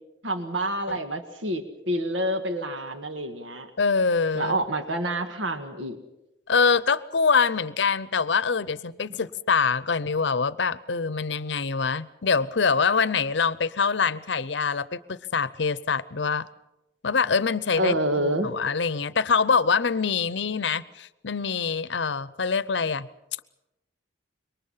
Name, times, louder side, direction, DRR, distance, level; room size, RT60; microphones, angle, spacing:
voice 1, 0.2-3.7 4.3-6.0 17.8-18.5, right 1 dB, 85° right, 6 dB, 1.8 m, -28 dB
voice 2, 3.8-4.6 6.5-16.5 17.0-23.1, left 5 dB, 70° left, 17 dB, 0.7 m, -24 dB
26.5 x 23.0 x 5.7 m, 0.94 s
head